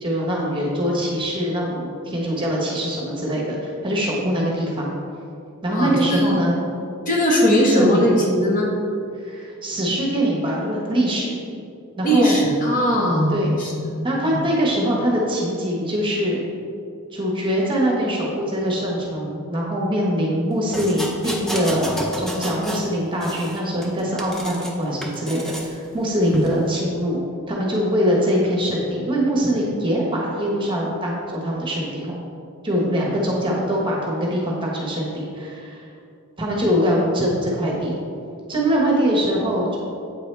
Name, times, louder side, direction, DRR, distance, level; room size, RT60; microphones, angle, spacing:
voice 1, 0.0-5.0 5.6-6.6 7.7-8.0 9.2-11.4 12.0-12.4 13.3-13.5 14.0-16.4 17.1-27.2 27.5-32.2 32.6-35.9 36.4-37.9 38.5-39.8, equal, 20° right, -3 dB, 1.2 m, -23 dB
voice 2, 5.7-6.4 7.1-8.7 12.0-14.4 26.2-26.4, equal, 35° left, -2 dB, 0.9 m, -19 dB
sound 1, 20.7-22.9 23.2-24.7 25.0-25.7 26.3-26.5, equal, ahead, 0.5 m, -31 dB
8.1 x 4.7 x 3.3 m, 2.5 s
head